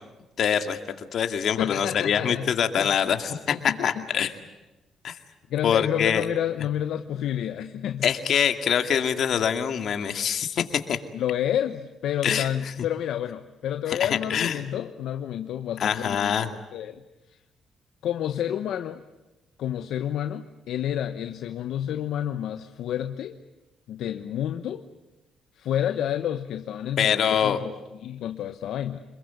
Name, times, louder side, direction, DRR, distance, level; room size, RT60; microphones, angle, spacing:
voice 1, 0.4-4.3 5.0-5.2 5.6-6.3 8.0-11.0 12.2-12.5 13.9-14.6 15.8-16.5 27.0-27.6, left 8 dB, 65° left, 7 dB, 2.3 m, -24 dB
voice 2, 1.6-2.5 2.8-2.9 3.5-4.0 5.5-8.1 11.1-16.3 16.7-17.0 17.3-17.4 18.0-19.0 19.6-23.4 23.9-24.8 25.6-27.7 28.0-29.0, left 10 dB, 80° left, 8 dB, 1.0 m, -29 dB
26.5 x 22.0 x 9.5 m, 1.0 s
cardioid pair, 90°, 0 cm